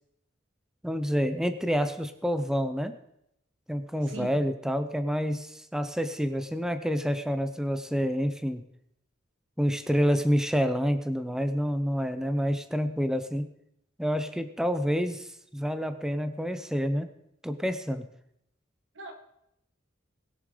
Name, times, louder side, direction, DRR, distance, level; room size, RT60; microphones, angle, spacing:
voice 1, 0.8-3.0 3.7-8.6 9.6-13.5 14.0-17.1 17.4-18.0, equal, 5° right, 10 dB, 0.7 m, -28 dB
voice 2, 4.0-4.4 18.9-19.1, right 2 dB, 85° right, 4 dB, 1.9 m, -40 dB
20.5 x 7.2 x 5.0 m, 0.78 s
head